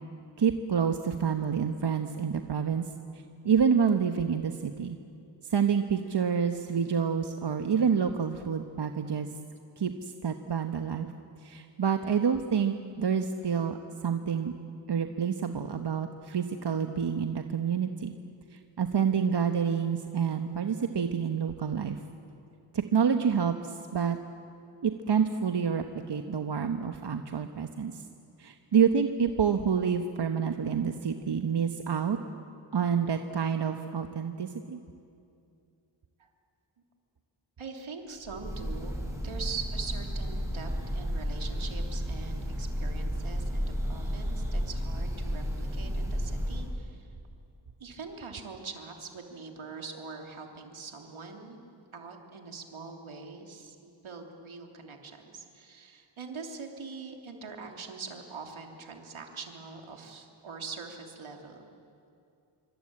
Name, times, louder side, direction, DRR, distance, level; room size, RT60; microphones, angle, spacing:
voice 1, 0.4-2.8 3.4-5.0 5.5-9.3 9.8-11.1 11.4-13.8 14.0-14.5 14.9-18.1 18.8-22.0 22.7-24.2 24.8-28.0 28.4-32.2 32.7-34.8, right 7 dB, 55° right, 6 dB, 1.2 m, -28 dB
voice 2, 37.6-47.1 47.8-51.6 51.9-61.6, right 4 dB, 80° right, 2 dB, 3.2 m, -43 dB
Breathing / Bird, 38.2-46.8, equal, 5° right, 6.3 m, -32 dB
27.0 x 25.0 x 8.8 m, 2.5 s
wide cardioid pair, 85°, 48 cm